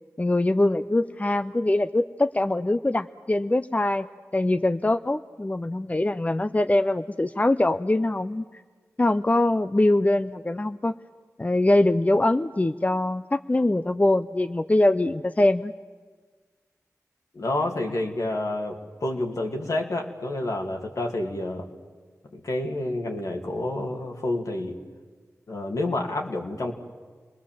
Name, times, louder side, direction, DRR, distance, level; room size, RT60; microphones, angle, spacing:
voice 1, 0.2-4.1 4.3-8.5 9.0-10.9 11.4-15.7, left 1 dB, 25° left, 10 dB, 0.6 m, -23 dB
voice 2, 17.3-21.7 22.3-24.8 25.5-26.7, left 2 dB, 70° left, 2 dB, 2.6 m, -29 dB
27.5 x 20.0 x 7.6 m, 1.5 s
cardioid pair, 45°, 6 cm